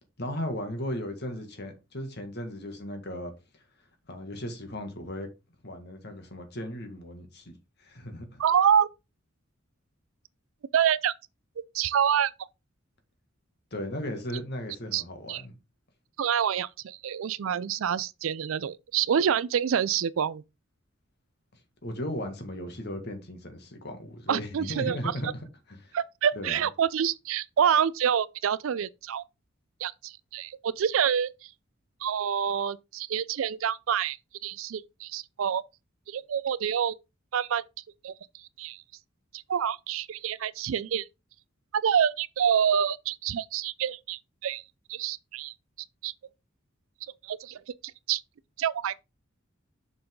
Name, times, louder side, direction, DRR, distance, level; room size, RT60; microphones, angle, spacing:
voice 1, 0.2-3.3 4.1-5.3 5.6-7.5 7.8-8.4 13.7-15.5 21.8-26.0 26.4-26.7, equal, 55° left, 1.9 m, -36 dB
voice 2, 8.4-8.9 10.7-11.1 11.7-12.3 14.9-15.0 15.3-15.4 16.2-20.4 24.3-25.0 25.2-25.3 25.9-29.2 29.8-31.5 32.0-34.2 34.4-35.6 36.1-37.0 37.3-37.6 38.0-38.8 39.3-41.1 41.7-44.6 44.9-45.5 46.0-46.1 47.2-47.6 48.1-48.2 48.6-49.0, right 8 dB, 80° right, 0.4 m, -27 dB
6.9 x 5.6 x 3.7 m
head